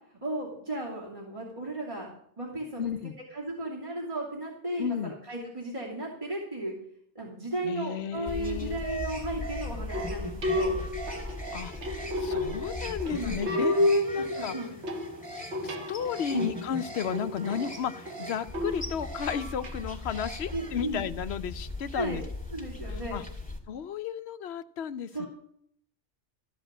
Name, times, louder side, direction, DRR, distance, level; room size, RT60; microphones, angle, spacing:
voice 1, 0.2-2.1 2.4-2.9 3.3-6.7 7.1-10.8 13.0-13.7 14.1-14.7 16.3-16.5 20.5-21.0 21.9-22.2 22.5-23.2 25.1-25.3, right 1 dB, 30° right, -5 dB, 2.9 m, -35 dB
voice 2, 2.8-3.2 4.8-5.1 7.6-8.8 11.5-11.7 12.2-14.6 15.6-22.2 22.9-23.2 23.7-25.3, left 8 dB, 70° left, 13 dB, 0.9 m, -33 dB
sound 1, 8.3-23.6, left 1 dB, 5° left, 2.1 m, -38 dB
sound 2, 9.9-19.7, left 1 dB, 80° right, 1.6 m, -31 dB
14.0 x 5.1 x 8.7 m, 0.67 s
omnidirectional pair, 1.1 m